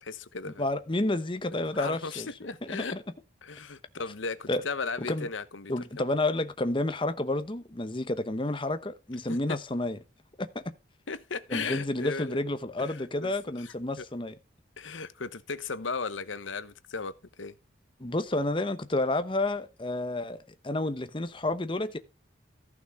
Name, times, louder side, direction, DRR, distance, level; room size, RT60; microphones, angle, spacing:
voice 1, 0.0-0.7 1.7-3.0 3.4-5.7 9.3-9.4 11.1-12.4 12.8-13.3 13.6-14.0 14.8-17.6, left 4 dB, 80° left, 1.0 m, -36 dB
voice 2, 0.6-2.3 2.6-3.0 4.5-4.6 5.0-5.3 5.7-10.0 10.4-10.7 11.5-14.4 18.0-20.4 20.6-22.0, left 2 dB, 25° left, 0.9 m, -30 dB
14.5 x 6.0 x 4.7 m
head